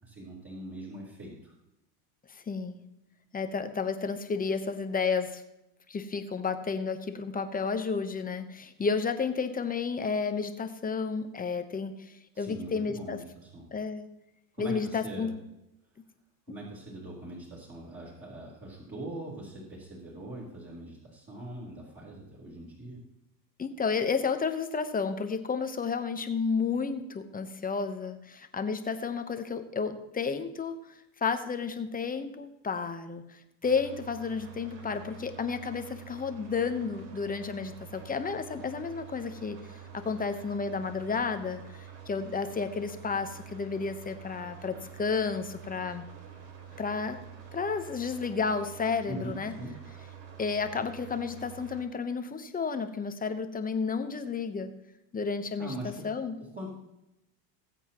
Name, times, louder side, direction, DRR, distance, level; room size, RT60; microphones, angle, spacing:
voice 1, 0.0-1.5 12.3-13.7 14.5-15.3 16.5-23.0 49.1-49.7 55.6-56.1 56.4-56.7, right 1 dB, 25° right, -6 dB, 3.7 m, -42 dB
voice 2, 2.3-2.8 3.3-5.4 5.9-13.2 13.7-14.1 14.6-15.3 23.6-30.8 31.2-39.6 39.9-46.1 46.8-47.2 47.5-49.5 50.4-54.7 55.1-56.4, left 5 dB, 15° left, 8 dB, 0.9 m, -32 dB
sound 1, 33.6-51.8, right 8 dB, 85° right, 2.7 m, -47 dB
19.5 x 8.1 x 3.0 m, 0.88 s
supercardioid pair, 125°, 50 cm